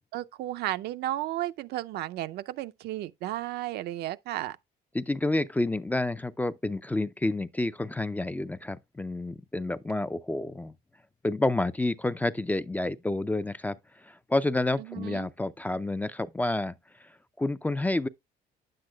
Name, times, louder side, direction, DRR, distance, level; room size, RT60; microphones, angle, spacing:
voice 1, 0.1-4.6 14.9-15.3, right 14 dB, 75° right, 0.5 m, -33 dB
voice 2, 4.9-10.7 11.2-18.1, left 2 dB, 10° left, 0.3 m, -29 dB
9.6 x 7.7 x 2.2 m
cardioid pair, 110°, 17 cm